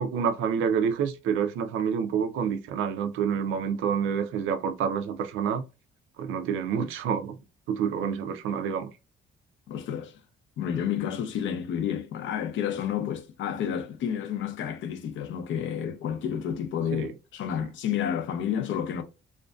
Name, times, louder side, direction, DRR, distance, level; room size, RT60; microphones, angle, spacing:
voice 1, 0.0-5.6 6.2-7.4 7.7-8.9 16.9-17.1, right 7 dB, 90° right, 0.4 m, -28 dB
voice 2, 9.7-10.2 10.6-19.0, left 9 dB, 75° left, 0.5 m, -30 dB
2.5 x 2.2 x 2.2 m
cardioid pair, 90°, 20 cm